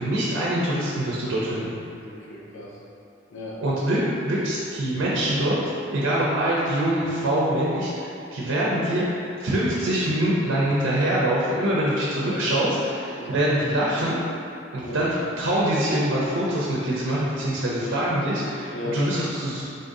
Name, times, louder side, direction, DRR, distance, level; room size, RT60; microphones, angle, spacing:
voice 1, 0.0-1.8 3.6-5.6 5.9-14.2 14.7-19.6, right 1 dB, 75° right, -6 dB, 0.6 m, -24 dB
voice 2, 2.0-2.8 3.3-3.6 12.1-12.5 13.2-13.4 14.8-15.1 18.7-19.1, left 1 dB, 70° left, -4 dB, 0.7 m, -35 dB
3.9 x 2.6 x 3.8 m, 2.6 s
head